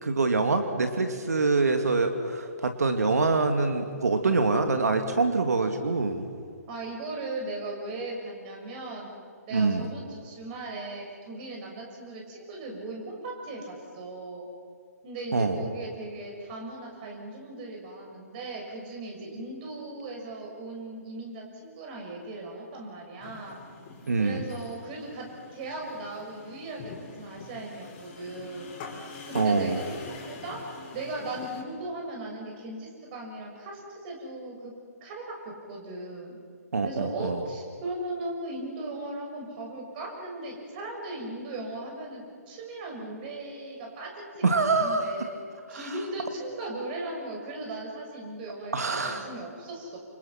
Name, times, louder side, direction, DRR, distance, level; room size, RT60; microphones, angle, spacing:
voice 1, 0.0-6.3 9.5-9.9 15.3-15.6 24.1-24.4 29.3-29.8 36.7-37.4 44.4-45.1 45.7-45.8 48.7-49.3, right 3 dB, 70° right, 6 dB, 2.4 m, -25 dB
voice 2, 6.7-9.1 9.5-14.5 15.0-23.6 24.2-28.7 29.3-30.6 30.9-34.7 35.0-36.4 36.8-45.4 45.7-48.7 49.1-50.0, right 2 dB, 35° right, 0 dB, 6.5 m, -38 dB
sound 1, 23.2-31.6, left 4 dB, 30° left, 5.2 m, -45 dB
28.0 x 27.5 x 6.0 m, 2.2 s
figure-of-eight pair, 135°, 9 cm